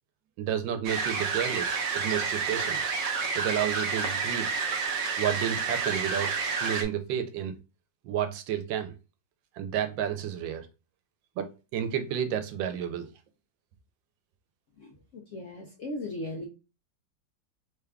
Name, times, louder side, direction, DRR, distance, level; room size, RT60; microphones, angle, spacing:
voice 1, 0.4-2.8 3.4-4.5 5.2-6.3 6.6-7.6 8.0-8.9 9.6-10.7 11.4-13.1, right 9 dB, 90° right, 1.3 m, -31 dB
sound 1, 0.8-6.8, right 5 dB, 65° right, 0.9 m, -29 dB
voice 2, 14.8-16.5, left 1 dB, 75° left, 0.7 m, -38 dB
3.5 x 2.3 x 3.4 m
omnidirectional pair, 2.0 m